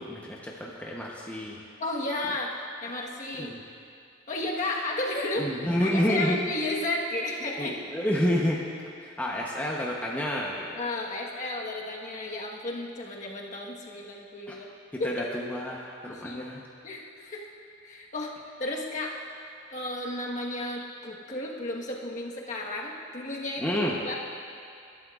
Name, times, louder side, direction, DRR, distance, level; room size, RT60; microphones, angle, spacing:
voice 1, 0.0-1.6 3.4-3.6 5.4-6.4 7.6-8.6 9.0-10.7 14.5-14.6 14.9-16.6 23.6-24.0, equal, 10° left, -4 dB, 0.9 m, -29 dB
voice 2, 1.8-3.5 4.3-5.5 5.8-8.0 10.7-14.7 15.0-15.3 16.0-16.5 16.8-17.4 17.8-18.3 18.6-19.2 19.7-23.8 24.0-24.2, left 2 dB, 40° left, -2 dB, 1.4 m, -33 dB
21.5 x 12.0 x 2.4 m, 2.5 s
head